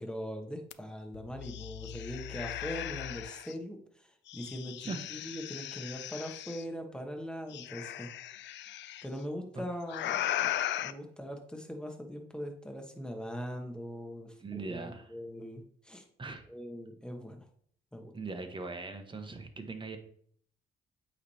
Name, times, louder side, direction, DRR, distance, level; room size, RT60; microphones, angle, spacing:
voice 1, 0.0-8.1 9.0-10.5 10.8-16.0 16.5-17.4 17.9-18.1, equal, 5° left, 3 dB, 1.3 m, -41 dB
sound 1, 0.7-0.8 1.1-3.5 4.3-6.6 7.5-9.0 9.9-10.9, left 12 dB, 65° left, 0.4 m, -37 dB
voice 2, 14.4-15.1 16.2-16.4 18.1-20.0, right 3 dB, 25° right, 6 dB, 1.1 m, -40 dB
8.3 x 3.3 x 4.3 m, 0.62 s
cardioid pair, 90°, 20 cm